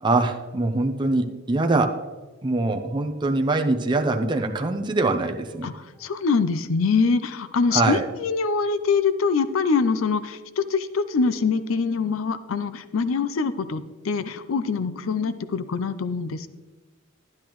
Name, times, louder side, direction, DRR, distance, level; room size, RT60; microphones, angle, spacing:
voice 1, 0.0-2.0 2.4-5.7 7.7-8.1, right 2 dB, 20° right, 4 dB, 0.6 m, -23 dB
voice 2, 5.6-16.5, left 4 dB, 65° left, 14 dB, 0.5 m, -24 dB
12.0 x 10.5 x 3.0 m, 1.3 s
head